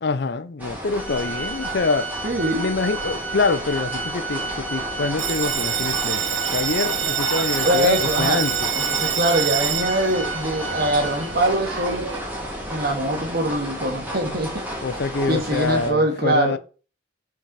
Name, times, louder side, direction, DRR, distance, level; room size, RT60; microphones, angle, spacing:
voice 1, 0.0-2.1 2.6-8.7 14.8-16.6, left 4 dB, 60° left, 0.6 m, -25 dB
sound 1, 0.6-15.9, equal, 10° right, 2.6 m, -32 dB
Organ, 1.0-11.6, right 4 dB, 10° left, 1.2 m, -32 dB
voice 2, 2.2-2.7 7.6-8.4 8.7-12.1 12.7-14.6 15.3-16.6, right 1 dB, 50° right, 2.3 m, -23 dB
Bell, 5.2-12.2, right 8 dB, 70° right, 1.0 m, -27 dB
5.9 x 5.3 x 5.7 m
head